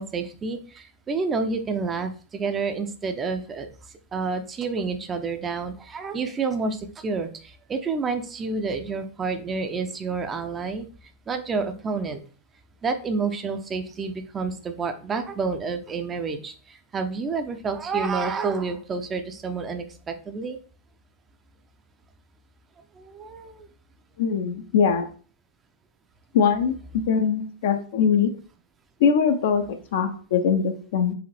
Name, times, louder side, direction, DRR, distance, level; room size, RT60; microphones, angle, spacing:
voice 1, 0.0-3.7 4.1-10.9 11.3-12.2 12.8-20.6 23.0-23.7, right 4 dB, 20° right, 7 dB, 0.5 m, -29 dB
voice 2, 24.2-25.1 26.3-26.7 27.1-28.3 29.0-31.1, left 6 dB, 55° left, 6 dB, 0.6 m, -22 dB
4.8 x 2.6 x 3.3 m, 0.40 s
figure-of-eight pair, 90°, 0 cm